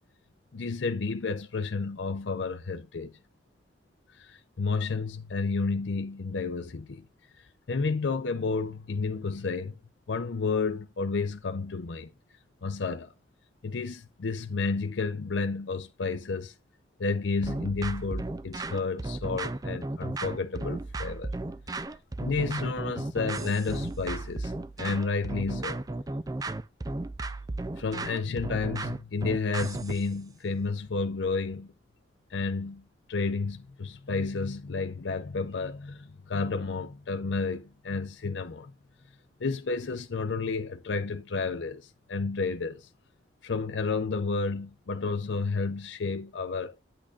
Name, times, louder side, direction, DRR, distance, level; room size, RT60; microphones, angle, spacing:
voice 1, 0.5-3.1 4.2-7.0 7.7-9.8 10.1-12.1 12.6-13.1 13.6-16.5 17.0-21.3 22.2-24.5 24.8-25.8 27.8-31.7 32.3-32.8 33.1-38.7 39.4-42.9 43.4-46.8, left 4 dB, 85° left, 0.6 m, -31 dB
sound 1, 17.4-30.1, right 2 dB, 20° right, 0.4 m, -34 dB
8.7 x 8.6 x 2.4 m
head